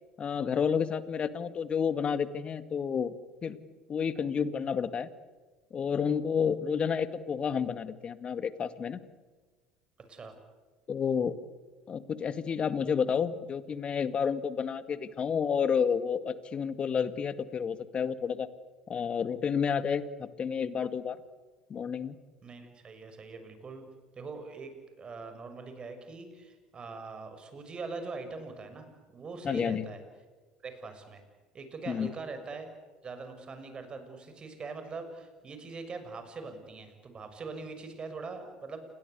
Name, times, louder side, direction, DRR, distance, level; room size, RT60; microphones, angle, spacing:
voice 1, 0.2-3.1 3.4-3.6 3.9-5.1 5.7-9.0 10.9-11.4 11.9-18.5 18.9-21.2 21.7-22.2 29.4-29.9 31.9-32.1, left 6 dB, 35° left, 13 dB, 2.0 m, -30 dB
voice 2, 22.4-23.9 24.1-30.0 30.6-31.2 31.5-32.7 33.0-38.8, right 4 dB, 35° right, 7 dB, 6.6 m, -42 dB
29.5 x 22.0 x 8.3 m, 1.3 s
hypercardioid pair, 70°, 3 cm